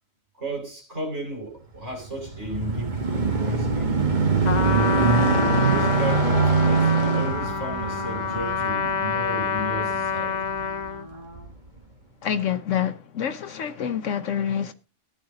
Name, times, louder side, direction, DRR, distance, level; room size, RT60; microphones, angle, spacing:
voice 1, 0.4-4.2 5.6-10.4, right 1 dB, 60° right, 5.5 m, -34 dB
sound 1, 1.9-10.7 11.4-11.5, right 4 dB, 35° right, 1.6 m, -23 dB
sound 2, 2.6-11.5, right 1 dB, 75° right, 4.9 m, -42 dB
Trumpet, 4.4-11.1, left 6 dB, 40° left, 0.8 m, -27 dB
voice 2, 12.2-14.7, left 9 dB, 75° left, 1.2 m, -27 dB
14.5 x 9.6 x 3.9 m
omnidirectional pair, 1.3 m